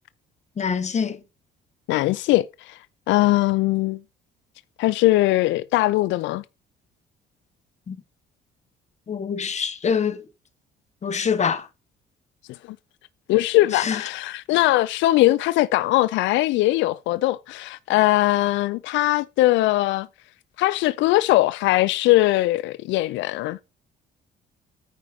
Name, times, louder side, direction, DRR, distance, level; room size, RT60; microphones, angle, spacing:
voice 1, 0.6-1.2 7.9-8.0 9.1-10.2 11.0-11.7 13.7-14.0, left 6 dB, 40° left, 1.5 m, -25 dB
voice 2, 1.9-2.8 3.1-4.0 4.8-6.4 13.3-20.1 20.6-23.6, left 17 dB, 85° left, 0.4 m, -20 dB
9.4 x 4.9 x 5.7 m
cardioid pair, 105°, 19 cm